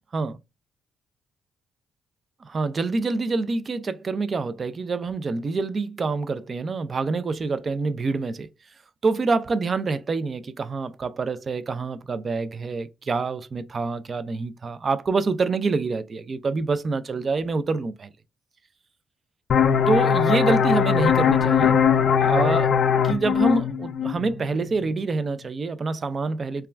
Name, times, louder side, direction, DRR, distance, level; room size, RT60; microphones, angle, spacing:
voice 1, 2.4-8.5 9.0-18.1 19.9-21.8 22.2-22.7 23.0-26.7, right 3 dB, 40° right, 0.3 m, -26 dB
sound 1, 19.5-24.9, left 7 dB, 60° left, 0.3 m, -20 dB
2.3 x 2.2 x 3.1 m
cardioid pair, 90°, 0 cm